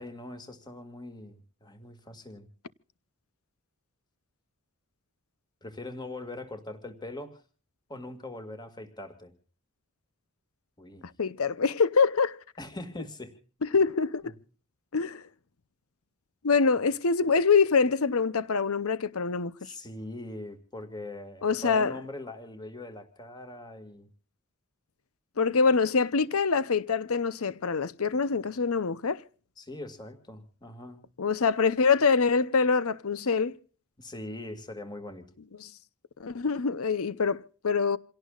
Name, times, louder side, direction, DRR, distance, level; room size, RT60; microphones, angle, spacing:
voice 1, 0.0-2.5 5.6-7.4 7.9-9.3 10.8-11.1 12.6-13.4 14.2-14.3 19.6-24.1 29.6-31.0 34.0-35.2, left 1 dB, 20° left, 2.1 m, -41 dB
voice 2, 11.2-12.4 13.6-14.3 14.9-15.2 16.4-19.7 21.4-21.9 25.4-29.2 31.2-33.6 35.6-35.7 36.2-38.0, left 5 dB, 75° left, 0.7 m, -25 dB
28.0 x 17.5 x 2.4 m
head